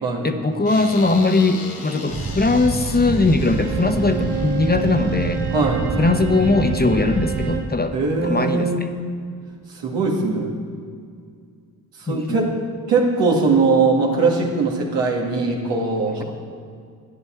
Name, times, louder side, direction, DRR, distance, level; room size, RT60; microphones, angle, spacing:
voice 1, 0.2-5.4 6.0-8.0 8.2-8.9 12.1-12.6, left 3 dB, 20° left, 7 dB, 0.9 m, -20 dB
sound 1, 0.7-6.0, left 3 dB, 60° left, 2.3 m, -38 dB
sound 2, 2.1-7.6, right 3 dB, 25° right, 0.8 m, -27 dB
Bowed string instrument, 3.4-7.8, right 7 dB, 65° right, 1.6 m, -30 dB
voice 2, 5.5-5.9 7.9-8.9 9.8-10.5 12.1-12.6 12.9-16.2, right 4 dB, 80° right, -2 dB, 2.0 m, -20 dB
13.0 x 10.5 x 4.4 m, 2.2 s
supercardioid pair, 45°, 42 cm